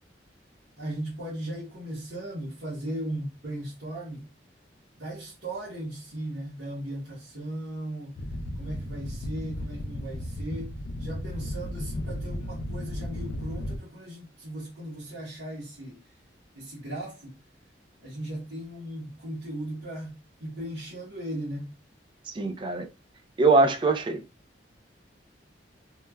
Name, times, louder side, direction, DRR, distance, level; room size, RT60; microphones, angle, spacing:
voice 1, 0.8-4.3 5.0-8.2 8.6-16.0 16.5-17.4 18.0-21.7, right 1 dB, 70° right, 1.0 m, -37 dB
sound 1, 8.2-13.8, left 1 dB, 70° left, 0.4 m, -34 dB
voice 2, 22.3-22.9 23.4-24.2, right 3 dB, 25° right, 0.3 m, -22 dB
3.1 x 2.2 x 2.2 m
head